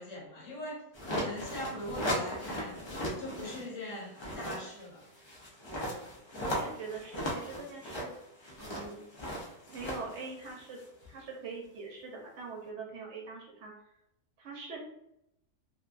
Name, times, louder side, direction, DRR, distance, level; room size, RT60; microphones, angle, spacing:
voice 1, 0.0-2.8 3.2-5.1, left 1 dB, 75° left, -2 dB, 1.2 m, -42 dB
sound 1, 0.9-3.7 4.0-11.1, equal, 50° left, 0.3 m, -37 dB
voice 2, 6.4-8.1 8.6-9.0 9.7-10.8 11.1-13.7 14.4-14.8, right 4 dB, 65° right, -1 dB, 0.9 m, -43 dB
2.8 x 2.2 x 2.4 m, 0.81 s
omnidirectional pair, 1.4 m